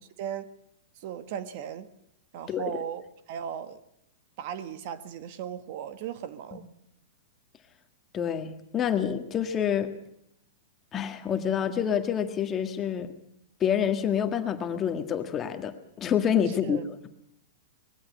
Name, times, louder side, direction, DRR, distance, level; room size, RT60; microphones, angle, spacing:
voice 1, 1.0-1.9 2.3-3.0 3.3-3.8 4.4-6.6 16.5-16.8, right 9 dB, 50° right, 1.4 m, -36 dB
voice 2, 8.1-9.9 10.9-13.1 13.6-17.1, left 8 dB, 20° left, 1.7 m, -27 dB
20.5 x 16.0 x 8.4 m
hypercardioid pair, 150°, 0 cm